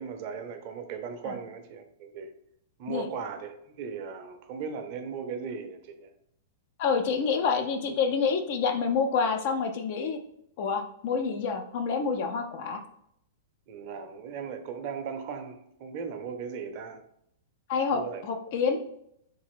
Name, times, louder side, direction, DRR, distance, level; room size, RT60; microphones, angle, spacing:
voice 1, 0.0-2.3 2.8-6.1 13.7-17.0 17.9-18.2, right 6 dB, 40° right, 6 dB, 0.5 m, -37 dB
voice 2, 6.8-10.2 10.6-12.8 17.7-18.8, left 5 dB, 45° left, 5 dB, 0.4 m, -27 dB
3.3 x 2.5 x 3.4 m, 0.74 s
figure-of-eight pair, 100°, 0 cm